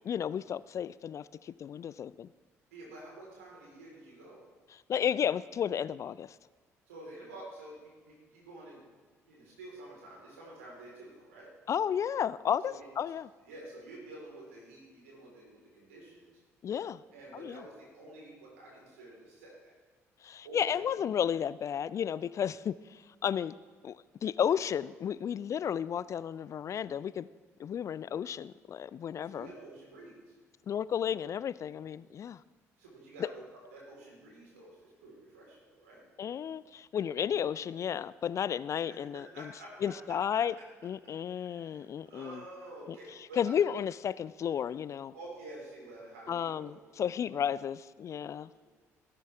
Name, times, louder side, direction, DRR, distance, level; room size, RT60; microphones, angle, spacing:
voice 1, 0.0-2.3 4.7-6.4 11.7-13.3 16.6-17.0 17.3-17.6 20.2-23.5 23.8-24.0 24.2-27.3 27.6-29.5 30.7-32.4 36.2-39.5 39.8-40.5 40.8-42.4 42.9-43.0 43.4-45.1 46.3-48.7, left 8 dB, 40° left, 18 dB, 0.3 m, -33 dB
voice 2, 2.7-4.5 6.9-8.8 9.3-11.5 12.6-12.9 13.5-16.3 17.1-19.5 20.4-21.0 29.2-30.3 32.8-36.0 38.9-40.2 41.3-43.5 45.1-47.2 48.1-48.3, right 1 dB, 75° right, -3 dB, 3.9 m, -49 dB
17.0 x 10.5 x 3.4 m, 1.5 s
figure-of-eight pair, 50°, 8 cm